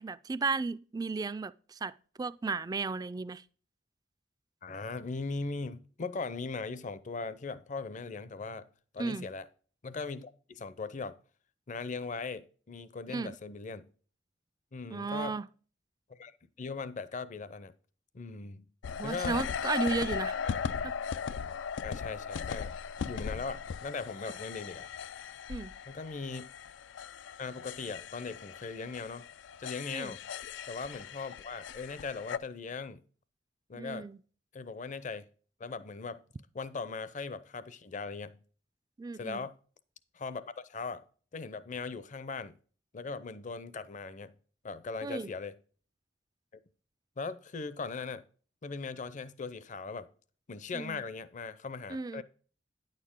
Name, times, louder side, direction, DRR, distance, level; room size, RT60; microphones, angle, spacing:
voice 1, 0.0-3.4 9.0-9.3 13.1-13.3 14.9-15.5 19.0-20.4 25.5-25.7 29.9-30.1 33.7-34.2 39.0-39.5 45.0-45.3 50.7-51.0 51.9-52.2, right 4 dB, 20° right, 0.3 m, -34 dB
voice 2, 4.6-8.7 8.9-9.5 9.8-11.2 11.7-13.9 14.7-15.3 16.1-16.3 16.6-17.7 18.1-18.7 19.0-19.4 20.4-20.9 21.8-22.7 23.0-24.9 25.9-26.5 27.4-29.3 29.6-30.2 30.7-33.0 33.7-34.1 34.5-35.2 35.6-36.2 36.5-38.4 39.1-39.5 40.1-41.0 41.3-42.6 42.9-44.3 44.6-45.5 47.2-48.2 48.6-50.1 50.5-52.2, left 4 dB, 45° left, 0.6 m, -39 dB
sound 1, 18.8-32.4, left 6 dB, 90° left, 0.4 m, -38 dB
9.5 x 6.6 x 3.6 m
head